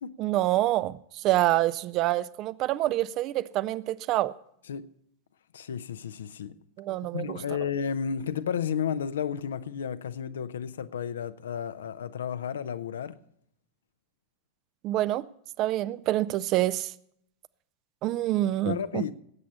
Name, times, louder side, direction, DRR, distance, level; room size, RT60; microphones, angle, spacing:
voice 1, 0.2-4.3 6.8-7.4 14.8-15.3 15.6-16.9 18.0-19.0, right 15 dB, 40° right, 0.5 m, -26 dB
voice 2, 5.5-6.5 7.1-13.2 18.6-19.1, left 7 dB, 65° left, 0.6 m, -32 dB
19.0 x 8.6 x 5.4 m
figure-of-eight pair, 90°, 0 cm